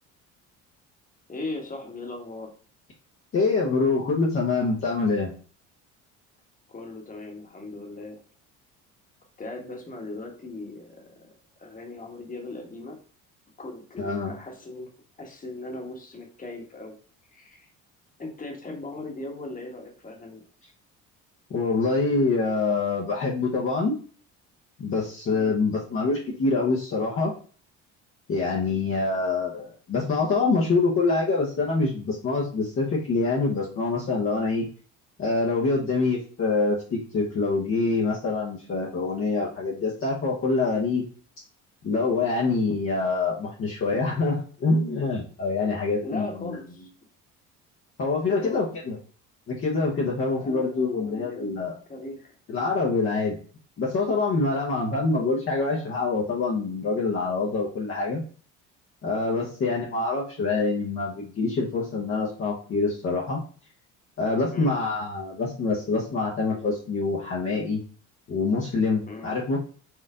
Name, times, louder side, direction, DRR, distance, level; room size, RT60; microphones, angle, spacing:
voice 1, 1.3-2.5 6.7-8.2 9.4-11.3 11.6-13.0 13.6-14.9 15.2-16.9 17.3-17.7 18.2-20.4 25.3-25.6 46.0-46.9 48.4-48.6 50.3-52.4 59.3-59.5 64.5-64.7 69.1-69.3, left 2 dB, 25° left, 1 dB, 1.3 m, -38 dB
voice 2, 3.3-5.3 14.0-14.3 21.5-23.9 24.8-27.3 28.3-34.6 35.2-41.0 41.8-46.6 48.0-49.0 49.5-51.7 52.5-53.4 53.8-58.2 59.0-63.4 64.2-67.8 68.3-69.6, left 3 dB, 40° left, -4 dB, 1.0 m, -25 dB
4.5 x 2.5 x 3.7 m, 0.42 s
supercardioid pair, 85°, 34 cm